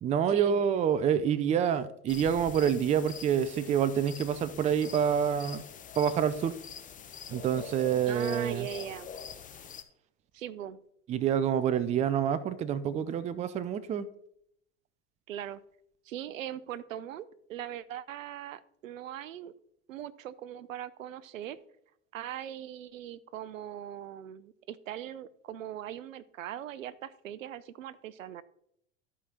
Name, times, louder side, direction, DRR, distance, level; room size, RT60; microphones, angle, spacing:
voice 1, 0.0-5.6 6.0-6.5 7.3-8.7 11.1-14.1, right 8 dB, 20° right, 0.4 m, -27 dB
sound 1, 2.1-9.8, left 7 dB, 20° left, 0.7 m, -45 dB
voice 2, 8.1-9.1 10.3-10.8 15.3-15.6 16.1-19.5 19.9-21.6 22.1-28.4, right 11 dB, 80° right, 0.6 m, -40 dB
13.5 x 5.0 x 2.9 m
hypercardioid pair, 90°, 39 cm